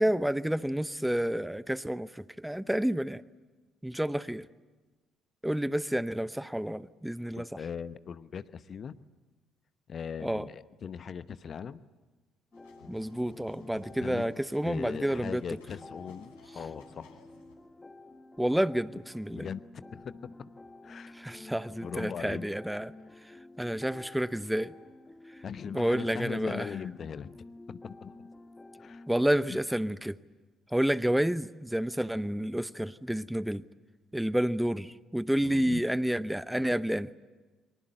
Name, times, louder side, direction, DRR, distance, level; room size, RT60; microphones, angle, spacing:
voice 1, 0.0-3.2 3.8-4.5 5.4-7.6 10.2-10.5 12.9-15.4 18.4-19.5 21.1-22.9 23.6-24.7 25.7-26.7 29.1-30.2 30.7-33.6 34.1-37.1, equal, 5° right, 0.8 m, -29 dB
voice 2, 7.4-9.0 9.9-11.8 14.0-14.3 14.6-17.2 19.3-20.5 20.8-21.1 21.8-22.5 25.4-27.3 27.7-28.3 28.8-29.0 29.5-29.6 35.4-35.8, left 7 dB, 45° left, 1.0 m, -40 dB
sound 1, 12.5-17.5, left 4 dB, 80° left, 5.1 m, -56 dB
sound 2, 12.5-29.3, left 2 dB, 25° left, 1.8 m, -50 dB
29.0 x 24.0 x 7.9 m
figure-of-eight pair, 45°, 0 cm